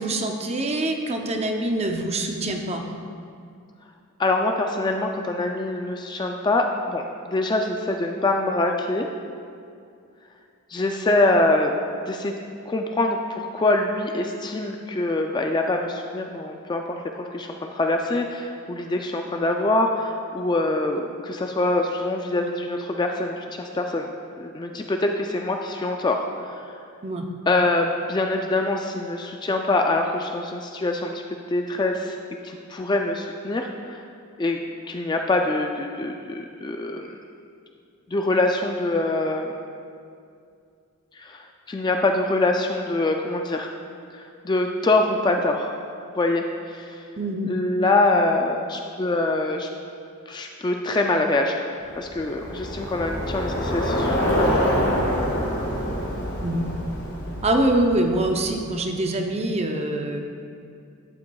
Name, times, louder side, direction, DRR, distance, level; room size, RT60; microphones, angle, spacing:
voice 1, 0.0-2.8 27.0-27.2 47.2-47.5 56.4-56.7 57.4-60.2, right 1 dB, 30° right, 3 dB, 0.6 m, -24 dB
voice 2, 4.2-9.1 10.7-11.7 12.1-12.3 12.7-24.1 24.4-26.6 27.5-32.2 32.4-34.1 34.4-34.6 34.9-37.2 38.1-39.6 41.2-41.4 41.7-43.7 44.1-45.7 46.1-47.0 47.5-49.7 50.3-51.5 52.0-54.8, left 2 dB, 20° left, 3 dB, 0.3 m, -24 dB
Bicycle, 52.0-58.5, equal, 50° left, 2.1 m, -26 dB
11.5 x 8.5 x 2.3 m, 2.4 s
head